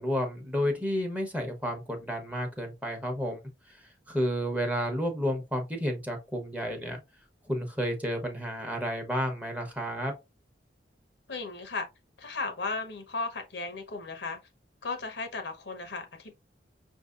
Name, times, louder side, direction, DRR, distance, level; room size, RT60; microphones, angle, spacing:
voice 1, 0.0-3.4 3.7-7.0 7.5-10.1, equal, 10° right, 0.9 m, -31 dB
voice 2, 11.3-11.9 12.2-14.4 14.8-16.3, left 3 dB, 65° left, 0.9 m, -35 dB
5.9 x 2.7 x 2.4 m
head